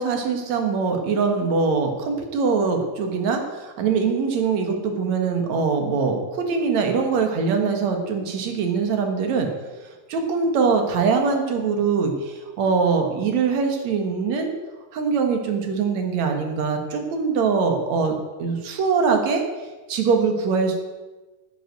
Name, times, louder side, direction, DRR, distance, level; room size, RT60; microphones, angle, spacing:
voice 1, 0.0-9.5 10.1-14.5 14.9-19.4 19.9-20.8, right 5 dB, 55° right, 4 dB, 2.5 m, -22 dB
10.0 x 8.3 x 7.9 m, 1.2 s
omnidirectional pair, 4.2 m